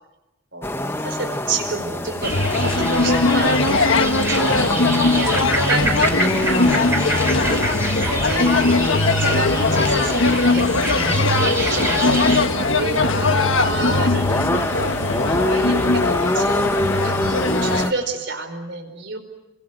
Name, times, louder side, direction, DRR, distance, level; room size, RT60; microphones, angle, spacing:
voice 1, 0.5-8.6 9.2-15.1 15.4-19.2, right 3 dB, 60° right, 8 dB, 4.8 m, -30 dB
sound 1, 0.6-17.9, left 1 dB, 10° left, 1.1 m, -26 dB
sound 2, 2.2-17.9, left 3 dB, 75° left, 1.4 m, -20 dB
sound 3, 2.2-12.5, right 2 dB, 15° right, 4.7 m, -27 dB
29.0 x 25.0 x 8.0 m, 0.99 s
head